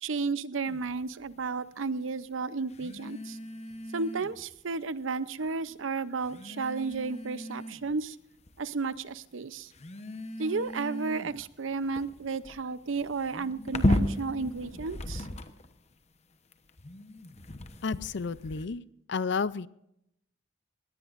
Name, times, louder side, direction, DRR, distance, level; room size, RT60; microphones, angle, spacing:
voice 1, 0.0-3.4 3.9-8.2 8.6-9.7 10.4-15.3, right 4 dB, 80° right, 16 dB, 0.7 m, -33 dB
sound 1, 0.7-0.9 2.7-4.5 5.5-5.6 6.2-8.0 8.5-9.0 9.7-15.8 16.5-18.7, left 1 dB, 35° left, 1.0 m, -35 dB
voice 2, 17.8-18.8 19.1-19.7, left 5 dB, 60° left, 18 dB, 0.5 m, -31 dB
20.5 x 18.0 x 2.6 m, 0.77 s
head